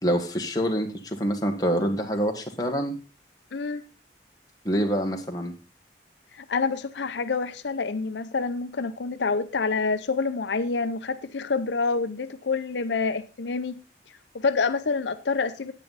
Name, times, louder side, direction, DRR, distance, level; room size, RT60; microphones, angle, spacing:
voice 1, 0.0-2.9 4.6-5.5, equal, 20° left, 1.5 m, -26 dB
voice 2, 3.5-3.8 6.4-13.8 14.3-15.7, left 4 dB, 85° left, 0.7 m, -27 dB
10.0 x 9.2 x 4.0 m
head